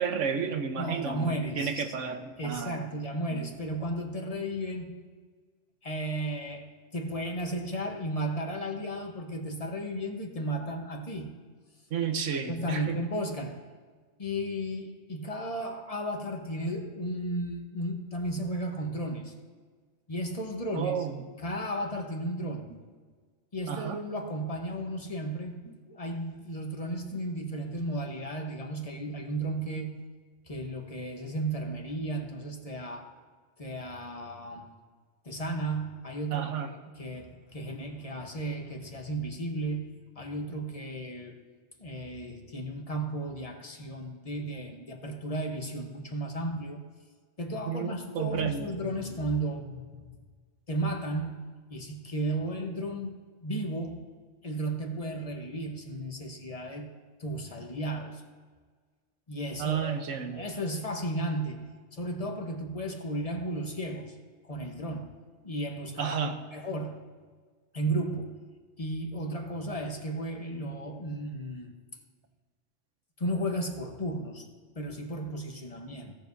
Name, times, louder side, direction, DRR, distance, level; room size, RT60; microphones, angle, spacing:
voice 1, 0.0-2.9 3.3-3.5 11.9-13.0 20.7-21.1 23.7-24.0 25.7-25.8 36.3-36.7 47.7-48.7 59.6-60.5 66.0-66.3, right 7 dB, 75° right, 6 dB, 1.2 m, -32 dB
voice 2, 0.8-1.9 2.4-5.0 5.8-6.7 6.9-11.3 12.5-13.6 14.2-19.3 20.1-21.0 21.4-22.7 23.5-25.6 25.9-29.9 30.5-33.1 33.6-34.7 35.2-39.9 40.1-41.3 41.8-46.8 47.4-50.1 50.7-51.3 51.7-53.2 53.4-54.1 54.4-56.9 57.2-58.2 59.3-60.1 60.3-61.6 61.9-64.2 64.4-65.1 65.4-67.0 67.7-68.3 68.8-71.7 73.2-74.4 74.7-76.1, right 1 dB, 30° left, 3 dB, 1.1 m, -34 dB
17.0 x 6.9 x 2.7 m, 1.5 s
omnidirectional pair, 1.3 m